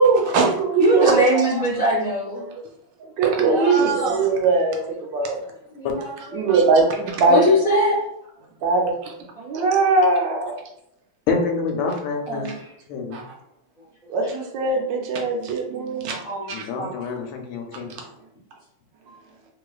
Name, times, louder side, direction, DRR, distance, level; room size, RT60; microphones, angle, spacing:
voice 1, 0.0-1.5 3.2-4.8 5.1-5.4 6.3-7.4 8.6-9.1 9.4-10.6 13.1-13.3 14.1-16.2 16.5-16.6 19.1-19.2, right 3 dB, 75° right, 1 dB, 1.2 m, -20 dB
voice 2, 0.8-2.4 3.4-4.2 5.7-6.5 7.3-8.0 12.3-12.5 16.1-16.5 16.8-17.0, equal, 45° left, -7 dB, 0.7 m, -22 dB
voice 3, 11.3-12.6 12.9-13.2 16.5-18.0, left 4 dB, 85° left, 3 dB, 1.4 m, -27 dB
3.2 x 3.1 x 2.3 m, 0.78 s
omnidirectional pair, 2.2 m